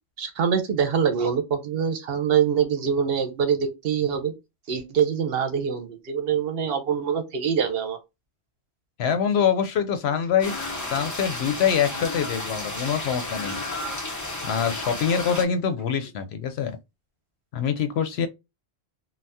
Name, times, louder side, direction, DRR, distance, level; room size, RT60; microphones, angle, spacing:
voice 1, 0.2-4.3 4.7-8.0, right 7 dB, 65° right, 0.8 m, -24 dB
voice 2, 9.0-13.6 14.4-16.8 17.5-18.3, left 7 dB, 75° left, 0.8 m, -25 dB
sound 1, 10.4-15.4, left 2 dB, 25° left, 0.5 m, -32 dB
2.7 x 2.1 x 3.4 m
omnidirectional pair, 1.1 m